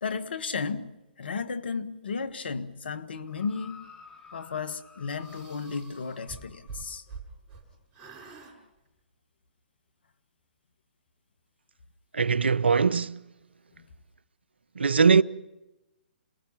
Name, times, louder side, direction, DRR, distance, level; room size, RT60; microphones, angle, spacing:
voice 1, 0.0-3.9 4.3-7.0 13.8-13.9, left 5 dB, 70° left, 1.6 m, -34 dB
sound 1, 3.3-6.9 7.7-7.8, left 5 dB, 10° left, 5.9 m, -52 dB
sound 2, 5.2-7.6 7.9-8.5, right 5 dB, 25° right, 6.4 m, -45 dB
voice 2, 12.1-13.3 14.8-15.2, right 5 dB, 85° right, 0.7 m, -21 dB
28.5 x 20.0 x 5.9 m
hypercardioid pair, 130°, 6 cm